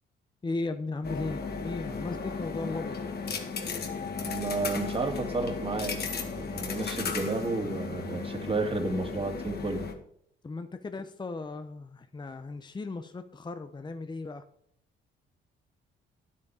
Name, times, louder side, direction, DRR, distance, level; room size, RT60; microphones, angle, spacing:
voice 1, 0.4-3.0 10.4-14.4, left 3 dB, 20° left, 9 dB, 0.8 m, -36 dB
sound 1, 1.0-9.9, left 4 dB, 55° left, 1.9 m, -35 dB
voice 2, 4.3-9.9, right 3 dB, 30° right, 4 dB, 2.5 m, -32 dB
9.8 x 8.6 x 4.9 m, 0.69 s
cardioid pair, 90°, 20 cm